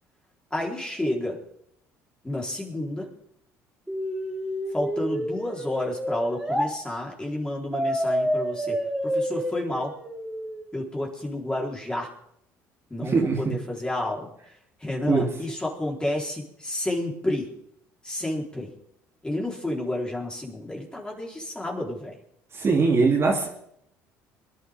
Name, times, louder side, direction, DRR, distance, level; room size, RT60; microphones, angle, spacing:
voice 1, 0.5-1.4 2.2-3.1 4.7-9.9 10.7-12.1 12.9-14.3 14.8-17.5 18.0-18.7 19.2-22.1, left 1 dB, 10° left, -2 dB, 4.1 m, -30 dB
Cartoon Rise and Fall, 3.9-6.7 7.7-10.7, equal, 5° right, 4.5 m, -29 dB
voice 2, 13.0-13.5 15.1-15.2 22.5-23.5, right 4 dB, 40° right, -1 dB, 3.2 m, -21 dB
24.0 x 11.0 x 3.7 m, 0.72 s
supercardioid pair, 80°, 7 cm